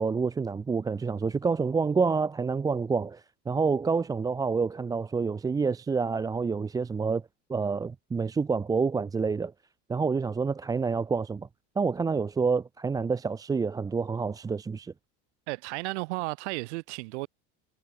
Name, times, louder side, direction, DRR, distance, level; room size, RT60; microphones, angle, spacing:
voice 1, 0.0-7.2 7.5-9.5 9.9-11.5 11.8-14.9, right 5 dB, 10° right, 0.4 m, -28 dB
voice 2, 15.5-17.3, right 25 dB, 85° right, 1.7 m, -33 dB
cardioid pair, 135°, 33 cm